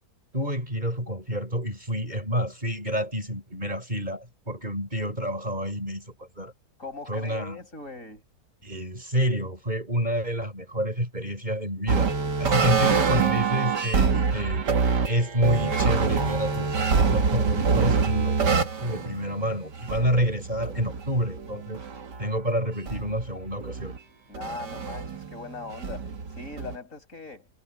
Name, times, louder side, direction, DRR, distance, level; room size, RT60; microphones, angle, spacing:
voice 1, 0.3-6.5 7.1-7.6 8.6-12.1 12.4-14.7 15.1-21.8 22.2-23.9, equal, 25° right, 6.6 m, -28 dB
voice 2, 6.8-8.2 24.3-27.5, left 3 dB, 50° left, 6.4 m, -40 dB
sound 1, 11.9-22.2 22.9-24.0 24.3-26.8, right 5 dB, 80° right, 2.4 m, -26 dB
omnidirectional pair, 1.8 m